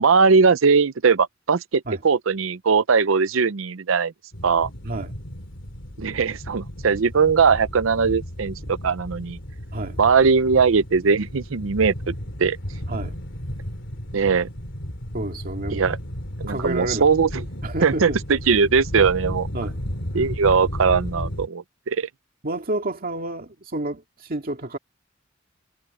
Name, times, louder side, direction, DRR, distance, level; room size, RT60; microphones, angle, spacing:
voice 1, 0.0-4.1 4.4-4.7 6.0-9.4 10.0-12.6 14.1-14.5 15.7-16.0 16.4-17.3 17.8-19.5 20.1-22.1, right 5 dB, 75° right, 0.6 m, -20 dB
sound 1, 4.3-21.5, equal, 65° left, 2.9 m, -34 dB
voice 2, 15.1-15.8 16.5-17.1 17.6-18.2 18.9-19.8 20.1-20.3 22.4-24.8, right 1 dB, 45° right, 2.1 m, -30 dB
head